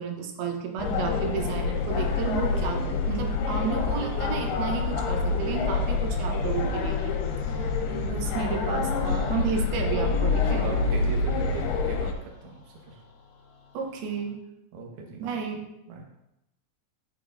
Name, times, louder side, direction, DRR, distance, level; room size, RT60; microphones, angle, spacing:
voice 1, 0.0-7.1 7.5-7.6 8.0-10.7 13.7-14.4 15.2-15.6, right 6 dB, 85° right, 3 dB, 2.9 m, -32 dB
sound 1, 0.8-12.1, left 4 dB, 85° left, 3.0 m, -27 dB
sound 2, 1.7-14.3, left 4 dB, 60° left, 3.5 m, -49 dB
voice 2, 7.8-8.2 10.4-12.5 12.8-13.0 14.7-15.2 15.9-16.0, right 4 dB, 60° right, 0 dB, 2.3 m, -38 dB
11.5 x 7.3 x 2.6 m, 0.86 s
omnidirectional pair, 4.4 m